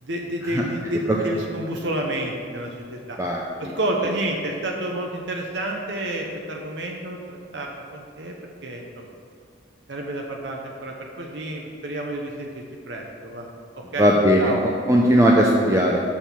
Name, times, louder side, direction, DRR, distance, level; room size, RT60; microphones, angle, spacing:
voice 1, 0.0-3.2 3.7-9.1 9.9-13.5 13.7-14.6, right 1 dB, 70° right, 0 dB, 0.9 m, -30 dB
voice 2, 3.2-3.7 14.0-14.5 14.9-16.0, equal, 15° right, -2 dB, 0.6 m, -18 dB
6.4 x 5.8 x 7.2 m, 2.3 s
head